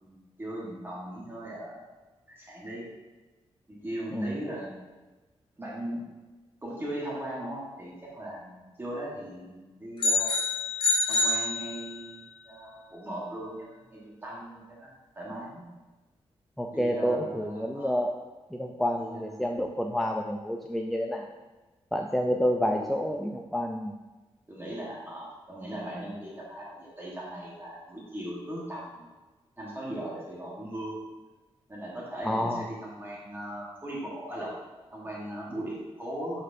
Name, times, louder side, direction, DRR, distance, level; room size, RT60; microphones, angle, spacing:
voice 1, 0.0-1.8 2.3-2.9 3.7-4.9 5.6-6.0 6.6-10.3 11.1-14.9 15.1-15.7 16.7-18.0 18.9-19.4 22.3-22.4 22.8-23.0 24.5-29.1 29.6-31.0 31.7-34.5 34.9-36.4, right 1 dB, 20° right, -5 dB, 1.3 m, -38 dB
sound 1, 10.0-12.2, left 3 dB, 50° left, 1.5 m, -27 dB
voice 2, 16.6-18.1 18.5-21.3 21.9-23.9 32.2-32.6, equal, ahead, 2 dB, 0.3 m, -29 dB
11.0 x 4.3 x 2.6 m, 1.2 s
wide cardioid pair, 165°, 11 cm